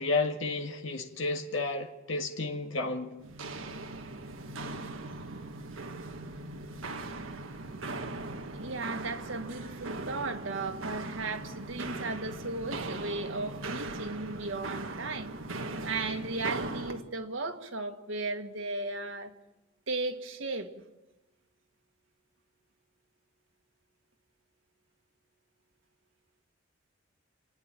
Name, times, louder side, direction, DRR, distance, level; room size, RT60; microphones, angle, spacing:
voice 1, 0.0-3.1, left 3 dB, 75° left, 1.8 m, -31 dB
Walk footsteps, 3.2-17.0, right 2 dB, 90° right, 1.5 m, -39 dB
voice 2, 8.5-15.3 15.9-19.3 19.9-20.7, right 3 dB, 75° right, 1.9 m, -36 dB
29.5 x 9.9 x 9.0 m
head